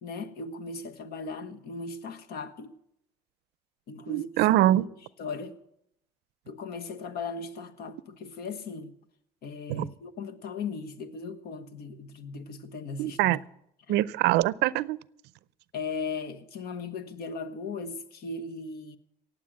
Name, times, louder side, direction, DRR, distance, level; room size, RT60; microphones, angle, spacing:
voice 1, 0.0-2.7 3.9-4.3 4.8-4.9 5.2-5.6 6.5-8.9 9.4-13.4 13.9-14.0 15.7-19.0, left 4 dB, 65° left, 1.3 m, -37 dB
voice 2, 4.1-4.8 9.7-9.9 13.0-13.4 13.9-15.0, right 15 dB, 85° right, 0.5 m, -24 dB
18.0 x 7.9 x 7.6 m
cardioid pair, 110°, 17 cm